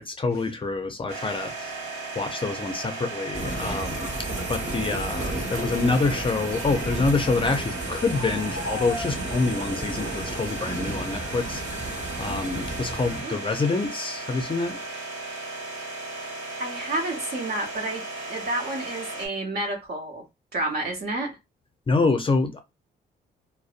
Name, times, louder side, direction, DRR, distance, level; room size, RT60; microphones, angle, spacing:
voice 1, 0.0-1.7 2.2-4.1 4.5-14.8 21.9-22.6, left 3 dB, 25° left, 0.5 m, -26 dB
sound 1, 1.1-19.3, right 3 dB, 85° right, 0.7 m, -36 dB
sound 2, 3.3-13.2, right 1 dB, 35° right, 1.1 m, -33 dB
voice 2, 16.6-18.0 18.3-20.2 20.5-21.3, right 2 dB, 50° right, 1.0 m, -30 dB
2.5 x 2.0 x 2.4 m
supercardioid pair, 60°, 20 cm